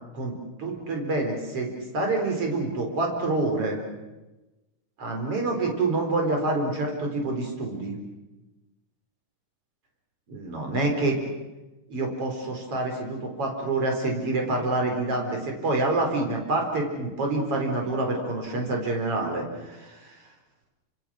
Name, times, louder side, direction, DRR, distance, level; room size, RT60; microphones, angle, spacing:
voice 1, 0.1-3.8 5.0-8.0 10.3-11.2 11.9-20.2, right 2 dB, 40° right, 2 dB, 5.1 m, -27 dB
29.5 x 26.5 x 6.4 m, 1.1 s
omnidirectional pair, 4.0 m